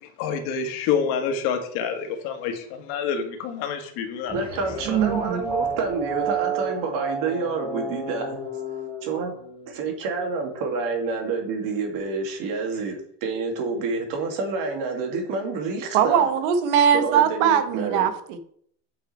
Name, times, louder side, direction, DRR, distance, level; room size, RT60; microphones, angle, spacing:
voice 1, 0.0-4.3, left 6 dB, 70° left, 1.7 m, -27 dB
sound 1, 4.3-9.8, right 4 dB, 10° left, 1.2 m, -31 dB
voice 2, 4.3-8.4 9.0-9.3 9.8-16.3 16.9-18.1, right 4 dB, 55° right, 2.5 m, -28 dB
voice 3, 4.9-5.4 15.9-18.4, right 8 dB, 80° right, 1.4 m, -21 dB
8.2 x 5.9 x 4.5 m
cardioid pair, 165°, 39 cm